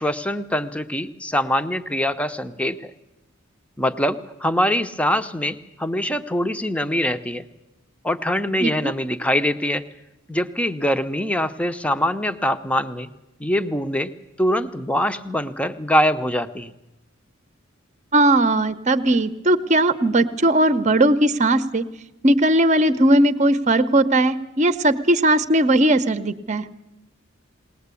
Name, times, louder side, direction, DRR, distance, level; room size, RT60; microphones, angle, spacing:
voice 1, 0.0-2.9 3.8-7.5 8.0-9.8 10.3-13.1 13.4-14.1 14.4-16.7, equal, 5° left, 10 dB, 0.7 m, -23 dB
voice 2, 8.6-8.9 18.1-21.8 22.2-26.6, right 1 dB, 35° right, 12 dB, 0.9 m, -18 dB
20.5 x 19.0 x 8.4 m, 0.91 s
head